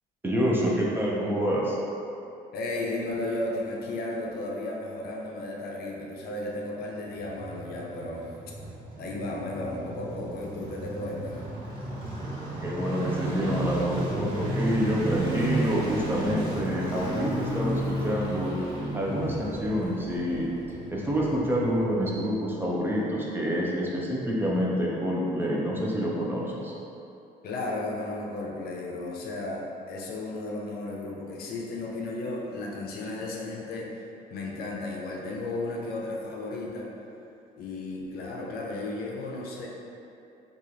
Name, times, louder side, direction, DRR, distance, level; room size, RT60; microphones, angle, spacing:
voice 1, 0.2-1.8 12.6-18.5 18.9-20.5 20.9-26.7, equal, 10° right, -5 dB, 0.5 m, -27 dB
voice 2, 2.5-8.3 9.0-11.4 27.4-36.9 37.6-39.7, left 2 dB, 65° left, -2 dB, 0.6 m, -34 dB
sound 1, 7.0-22.3 22.5-22.6, right 1 dB, 30° right, 1.3 m, -33 dB
3.0 x 2.4 x 3.8 m, 2.7 s
cardioid pair, 110°, 17 cm